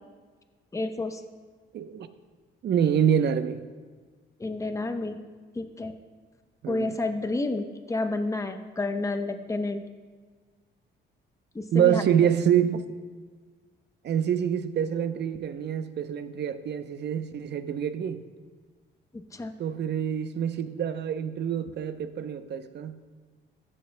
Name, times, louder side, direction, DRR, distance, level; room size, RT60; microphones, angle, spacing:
voice 1, 0.7-1.2 4.4-5.2 5.5-5.9 6.7-9.8 11.5-12.0 19.1-19.5, left 2 dB, 15° left, 0.8 m, -30 dB
voice 2, 1.7-2.1 2.6-3.6 6.6-6.9 11.7-12.8 14.0-18.2 19.6-22.9, right 9 dB, 60° right, 0.7 m, -26 dB
15.0 x 11.0 x 2.2 m
cardioid pair, 90°, 20 cm